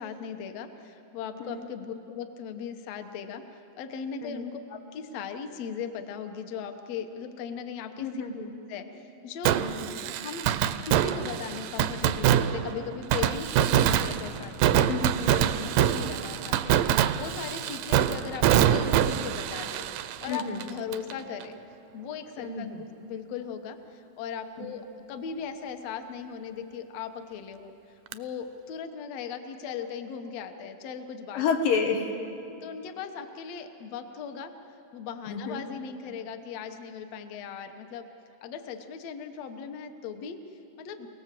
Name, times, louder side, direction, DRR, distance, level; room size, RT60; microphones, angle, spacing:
voice 1, 0.0-8.2 8.7-10.5 10.8-14.9 15.3-16.8 17.2-21.6 21.9-31.4 32.6-34.5 34.9-38.1 38.4-41.1, left 7 dB, 60° left, 7 dB, 1.9 m, -38 dB
voice 2, 8.0-8.5 9.6-9.9 14.9-15.5 20.3-20.6 22.4-22.8 24.6-24.7 31.3-32.2 35.3-35.6, left 5 dB, 90° left, 3 dB, 3.3 m, -30 dB
Fireworks, 9.5-21.1 21.4-21.5 28.1-28.2, right 10 dB, 80° right, 2.3 m, -25 dB
28.0 x 18.5 x 7.6 m, 2.8 s
omnidirectional pair, 3.9 m